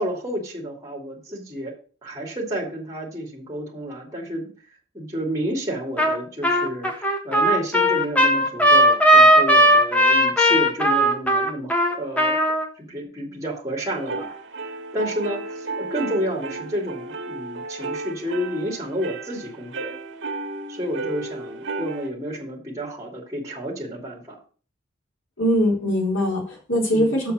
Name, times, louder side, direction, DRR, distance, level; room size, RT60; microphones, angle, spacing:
voice 1, 0.0-1.7 2.0-4.5 4.9-12.5 12.8-14.3 14.6-19.9 20.7-24.4 26.9-27.1, equal, 15° right, -1 dB, 2.6 m, -30 dB
Trumpet, 6.0-6.2 6.4-12.6, equal, 5° left, 1.3 m, -17 dB
sound 1, 13.9-22.1, right 3 dB, 65° right, 1.8 m, -33 dB
voice 2, 25.4-27.3, equal, 75° left, -1 dB, 3.8 m, -21 dB
7.2 x 5.7 x 6.5 m, 0.40 s
head